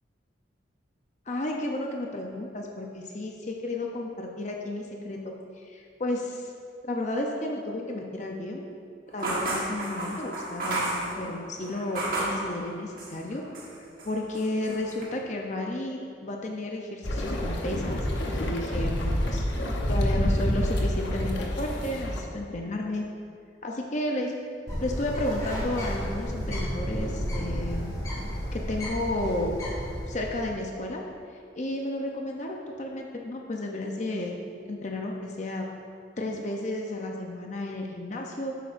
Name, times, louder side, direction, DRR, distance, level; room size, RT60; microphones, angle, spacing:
voice 1, 1.3-6.5 6.8-8.6 9.1-13.4 14.0-19.4 19.9-23.1 23.6-24.3 24.8-27.9 28.5-29.6 30.1-31.0 31.5-34.4 34.7-35.7 36.2-38.6, left 1 dB, 40° left, 1 dB, 0.6 m, -32 dB
sound 1, 9.2-12.5 13.0-13.7 14.0-15.0, right 2 dB, 50° right, 1.5 m, -32 dB
sound 2, 17.0-22.2, equal, 70° left, 1.0 m, -28 dB
Bird, 24.7-30.6, equal, 15° left, 1.7 m, -32 dB
10.0 x 8.1 x 2.6 m, 2.3 s
head